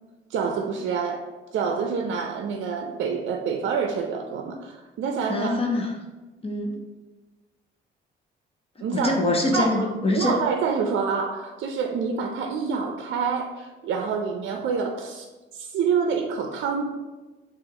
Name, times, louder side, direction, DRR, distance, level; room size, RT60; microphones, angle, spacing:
voice 1, 0.3-5.6 8.8-9.2 9.5-15.3 15.5-16.9, right 5 dB, 75° right, 4 dB, 0.5 m, -27 dB
voice 2, 5.3-5.9 6.4-6.8 8.9-10.3, left 2 dB, 30° left, 0 dB, 0.8 m, -24 dB
6.2 x 2.4 x 2.8 m, 1.2 s
cardioid pair, 90°, 20 cm